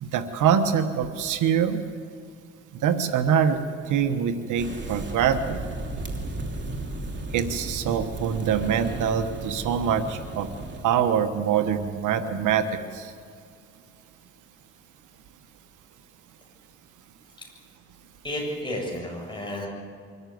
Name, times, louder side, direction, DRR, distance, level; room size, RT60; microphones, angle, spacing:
voice 1, 0.0-1.8 2.8-3.6 3.9-5.6 7.3-10.5 10.8-12.7 12.9-13.1, right 8 dB, 80° right, 9 dB, 1.3 m, -24 dB
sound 1, 4.6-10.8, right 2 dB, 35° right, 2.9 m, -34 dB
voice 2, 18.2-19.7, left 1 dB, 15° left, -1 dB, 7.8 m, -32 dB
24.5 x 14.0 x 9.4 m, 2.2 s
cardioid pair, 90°, 30 cm